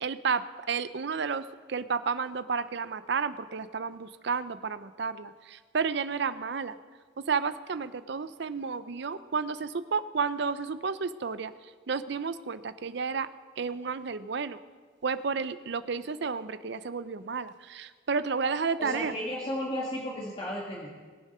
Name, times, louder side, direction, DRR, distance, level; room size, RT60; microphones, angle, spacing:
voice 1, 0.0-6.8 7.2-11.5 11.9-13.3 13.6-14.6 15.0-19.1, right 5 dB, 60° right, 14 dB, 0.5 m, -31 dB
voice 2, 18.8-20.9, left 1 dB, 30° left, -5 dB, 1.9 m, -34 dB
20.5 x 7.4 x 5.5 m, 1.5 s
head